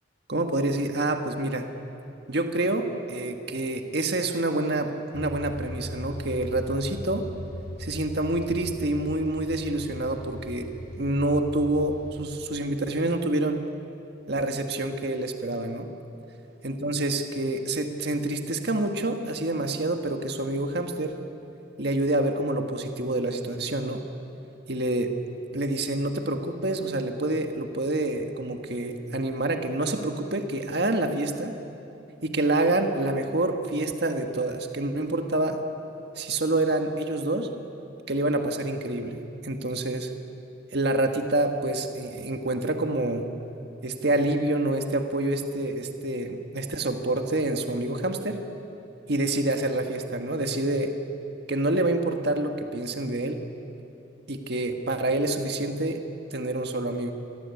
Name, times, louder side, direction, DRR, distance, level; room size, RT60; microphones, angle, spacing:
voice 1, 0.3-1.7 2.3-7.3 7.8-10.7 11.0-13.6 14.3-15.9 16.6-21.1 21.8-24.0 24.7-25.1 25.5-31.5 32.2-35.6 36.2-37.5 38.1-40.1 40.7-43.3 43.8-48.4 49.1-50.9 51.5-53.4 54.3-56.0 56.3-57.1, right 2 dB, 60° right, 5 dB, 1.8 m, -27 dB
sound 1, 5.1-12.2, equal, 50° left, 5.6 m, -39 dB
28.0 x 23.0 x 8.6 m, 2.8 s
head